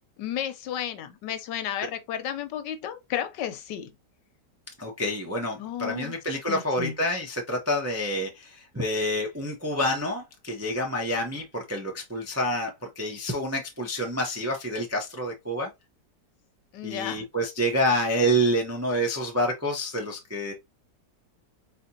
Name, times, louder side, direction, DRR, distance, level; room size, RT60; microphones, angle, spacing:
voice 1, 0.2-3.9 5.6-6.1 6.5-6.9 16.7-17.2, left 10 dB, 90° left, 1.4 m, -33 dB
voice 2, 4.8-15.7 16.8-20.5, equal, 25° right, 0.3 m, -28 dB
4.3 x 3.6 x 2.7 m
omnidirectional pair, 1.9 m